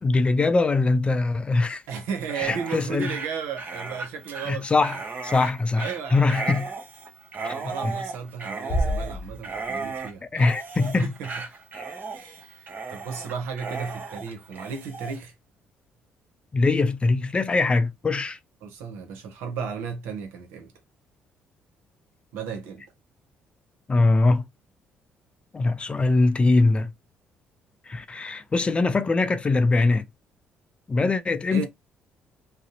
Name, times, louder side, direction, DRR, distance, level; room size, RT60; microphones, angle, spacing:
voice 1, 0.0-1.8 2.4-3.2 4.5-6.7 7.4-7.5 7.8-7.9 10.3-11.1 11.7-11.8 16.5-18.4 23.9-24.4 25.5-26.9 27.9-30.1 30.9-31.7, left 3 dB, 30° left, 0.4 m, -22 dB
voice 2, 1.9-4.7 5.7-6.4 7.3-10.3 11.0-11.3 12.1-15.3 18.6-20.7 22.3-22.9 31.5-31.7, right 6 dB, 85° right, 0.7 m, -34 dB
Dog, 2.2-15.2, right 4 dB, 50° right, 0.8 m, -35 dB
sound 1, 8.7-10.6, equal, 55° left, 0.8 m, -30 dB
2.5 x 2.0 x 2.8 m
supercardioid pair, 70°, 4 cm